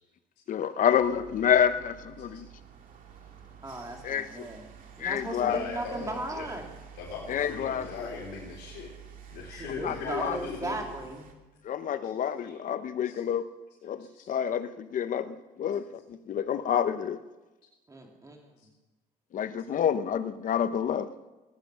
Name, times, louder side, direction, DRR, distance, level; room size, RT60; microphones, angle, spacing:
voice 1, 0.5-2.5 4.0-4.5 5.0-5.6 7.3-8.1 9.8-10.4 11.6-13.4 13.8-17.2 19.3-21.1, left 9 dB, 50° left, 12 dB, 0.9 m, -28 dB
sound 1, 1.0-11.3, right 8 dB, 55° right, 2.3 m, -49 dB
voice 2, 3.6-4.6 5.0-6.7 9.5-11.2 17.9-18.5, right 2 dB, 20° right, 2 dB, 2.8 m, -37 dB
voice 3, 5.5-6.5 7.0-8.9 9.3-10.7 12.4-12.5 13.0-13.2 14.0-14.3, left 5 dB, 80° left, -5 dB, 3.9 m, -39 dB
18.0 x 10.0 x 6.3 m, 1.1 s
cardioid pair, 110°, 17 cm